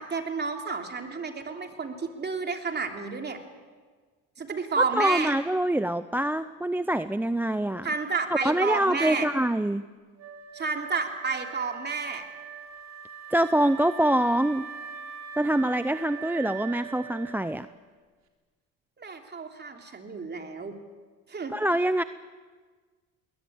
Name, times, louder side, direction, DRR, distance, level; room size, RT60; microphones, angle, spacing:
voice 1, 0.0-3.4 4.4-5.3 7.8-9.3 10.5-12.2 19.0-20.8 21.3-21.5, right 4 dB, 30° right, 4 dB, 3.1 m, -31 dB
voice 2, 4.9-7.9 8.4-9.8 13.3-14.7 15.4-17.7 21.5-22.0, right 1 dB, 5° right, 13 dB, 0.6 m, -25 dB
Wind instrument woodwind instrument, 10.2-17.7, right 7 dB, 50° right, 3.6 m, -42 dB
21.0 x 18.5 x 8.8 m, 1.5 s
supercardioid pair, 85°, 36 cm